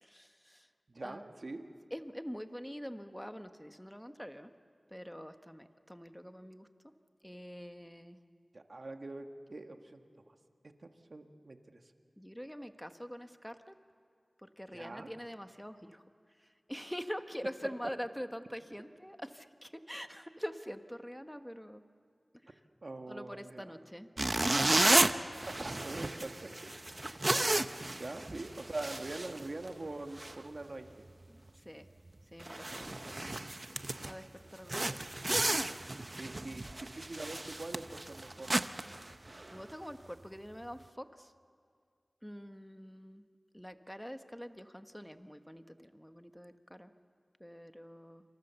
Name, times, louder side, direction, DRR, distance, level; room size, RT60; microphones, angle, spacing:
voice 1, 0.0-0.7 1.0-1.2 1.9-4.5 4.9-6.7 7.2-8.2 12.2-13.7 14.4-16.0 16.4-21.8 22.4-22.6 23.1-24.1 27.0-27.2 27.9-28.1 31.3-31.9 32.3-33.3 33.7-35.7 36.1-36.4 39.5-41.3 42.2-43.2 43.5-46.9 47.4-48.2, equal, 5° left, 8 dB, 1.3 m, -45 dB
voice 2, 0.9-1.7 8.5-10.3 10.6-11.8 14.7-15.1 22.8-23.8 25.5-26.7 28.0-31.1 32.7-32.9 36.2-36.7 36.9-38.6, right 2 dB, 65° right, 5 dB, 1.6 m, -44 dB
sound 1, 24.2-29.9 30.2-30.4 30.9-31.1 31.5-31.6 32.1-32.2 32.4-34.2 34.7-39.7, right 2 dB, 45° right, 0.8 m, -33 dB
27.5 x 26.0 x 7.0 m, 2.1 s
wide cardioid pair, 50°, 0 cm